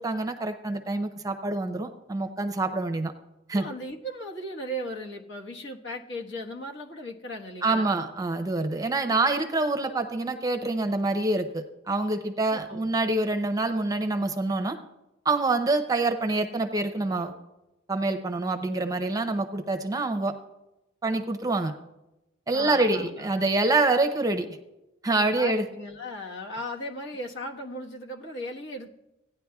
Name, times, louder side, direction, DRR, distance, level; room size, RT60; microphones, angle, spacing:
voice 1, 0.0-3.1 3.5-3.7 7.6-14.8 15.2-17.3 17.9-20.3 21.0-21.7 22.5-24.5 25.0-25.7, right 2 dB, 20° right, 7 dB, 0.6 m, -26 dB
voice 2, 3.5-8.1 12.5-12.9 22.5-23.3 25.3-28.9, equal, 65° left, 0 dB, 1.4 m, -37 dB
17.0 x 10.0 x 2.3 m, 0.94 s
head